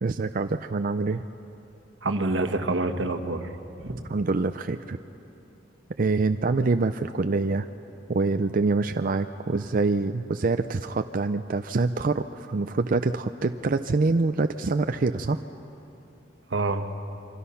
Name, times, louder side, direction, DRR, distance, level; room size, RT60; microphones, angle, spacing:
voice 1, 0.0-1.2 4.1-5.0 6.0-7.7 8.1-15.4, right 3 dB, 50° right, 8 dB, 0.5 m, -25 dB
voice 2, 2.0-3.5 3.8-4.0 16.5-16.9, right 2 dB, 80° right, 7 dB, 1.4 m, -27 dB
29.5 x 24.5 x 5.7 m, 2.9 s
head